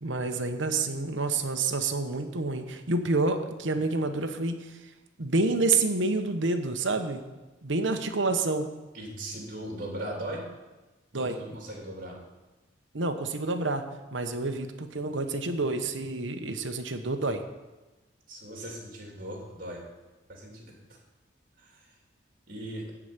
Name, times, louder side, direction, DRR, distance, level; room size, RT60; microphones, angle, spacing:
voice 1, 0.0-4.7 5.2-7.2 7.6-8.7 11.1-11.3 12.9-13.8 14.1-17.4, right 3 dB, 75° right, 6 dB, 1.1 m, -28 dB
voice 2, 8.9-10.4 11.2-12.1 18.3-19.8 20.3-21.0 21.6-21.9 22.5-22.9, right 1 dB, 45° right, 0 dB, 3.3 m, -39 dB
14.5 x 5.0 x 9.0 m, 1.1 s
head